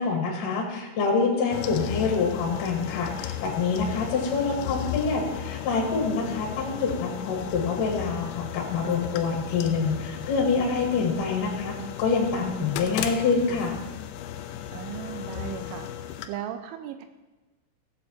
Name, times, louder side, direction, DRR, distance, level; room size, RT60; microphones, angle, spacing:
voice 1, 0.0-11.7 12.0-13.8, left 4 dB, 55° left, 1 dB, 2.6 m, -26 dB
sound 1, 1.5-16.3, left 11 dB, 85° left, 2.7 m, -35 dB
voice 2, 14.7-17.1, right 9 dB, 80° right, 8 dB, 3.0 m, -37 dB
16.0 x 7.8 x 4.3 m, 1.2 s
omnidirectional pair, 5.9 m